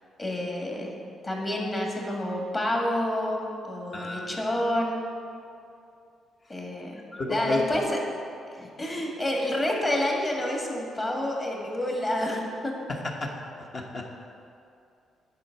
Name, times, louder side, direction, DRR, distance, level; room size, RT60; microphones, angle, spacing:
voice 1, 0.2-0.9 1.2-5.0 6.5-7.0 7.3-8.0 8.5-12.7, left 1 dB, 30° left, -1 dB, 1.8 m, -28 dB
voice 2, 3.9-4.4 7.1-7.9 12.9-13.3 13.6-14.1, left 2 dB, 45° left, 0 dB, 1.1 m, -32 dB
9.6 x 4.5 x 5.9 m, 2.5 s
cardioid pair, 90°, 0 cm